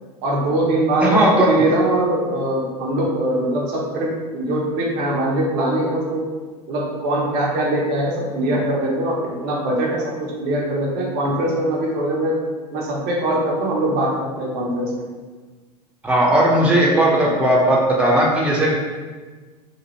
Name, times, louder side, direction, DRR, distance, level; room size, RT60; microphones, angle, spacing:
voice 1, 0.2-6.2 6.7-12.4 12.7-15.1, right 1 dB, 55° right, -3 dB, 0.7 m, -22 dB
voice 2, 1.0-1.6 16.0-18.7, right 1 dB, 5° right, -4 dB, 0.7 m, -16 dB
2.9 x 2.3 x 2.9 m, 1.4 s
hypercardioid pair, 85°, 20 cm